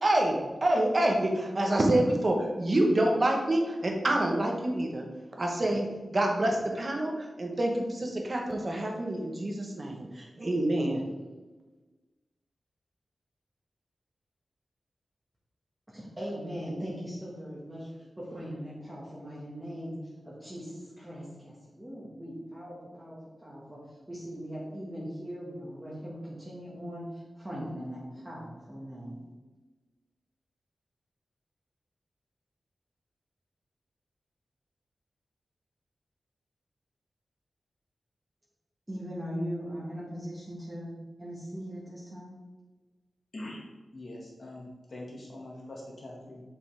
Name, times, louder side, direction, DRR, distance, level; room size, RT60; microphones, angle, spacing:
voice 1, 0.0-5.0 5.4-7.1 7.4-11.0, right 1 dB, 40° right, 1 dB, 1.2 m, -27 dB
voice 2, 15.9-17.9 18.2-20.0 20.2-23.8 24.1-27.0 27.3-29.2 38.9-42.3, equal, 15° right, -7 dB, 1.6 m, -39 dB
voice 3, 43.9-46.4, left 1 dB, 50° left, -3 dB, 2.0 m, -43 dB
6.9 x 5.6 x 3.5 m, 1.2 s
wide cardioid pair, 100°, 0 cm